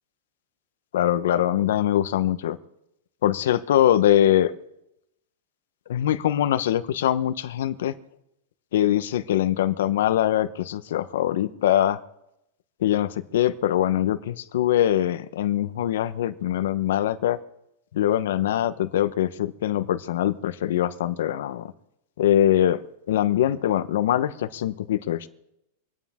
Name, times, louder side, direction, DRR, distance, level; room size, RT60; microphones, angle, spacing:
voice 1, 0.9-2.6 3.2-4.5 5.9-7.9 8.7-12.0 12.8-17.4 17.9-21.7 22.2-22.8 23.1-25.3, left 11 dB, 75° left, 10 dB, 1.0 m, -23 dB
26.5 x 9.5 x 3.7 m, 0.83 s
supercardioid pair, 155°, 0 cm